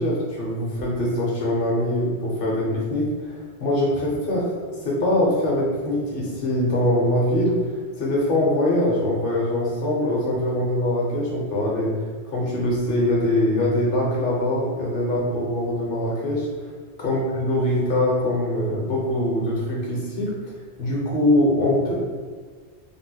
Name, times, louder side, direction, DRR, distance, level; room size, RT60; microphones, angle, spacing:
voice 1, 0.0-7.6 8.0-11.9 12.3-16.5 17.0-20.3 20.8-21.9, left 1 dB, 55° left, -4 dB, 0.9 m, -23 dB
3.4 x 2.1 x 2.7 m, 1.6 s
omnidirectional pair, 1.1 m